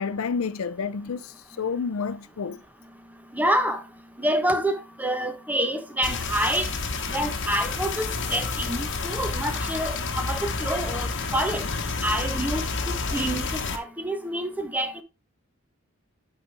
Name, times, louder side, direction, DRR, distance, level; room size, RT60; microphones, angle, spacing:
voice 1, 0.0-2.6, left 5 dB, 80° left, 0.5 m, -29 dB
voice 2, 3.3-3.8 4.2-6.7 7.1-11.6 12.0-12.6 13.1-13.4 13.7-15.0, right 1 dB, 10° right, 0.8 m, -27 dB
sound 1, 6.0-13.8, left 4 dB, 60° left, 1.1 m, -29 dB
8.0 x 4.8 x 3.4 m
head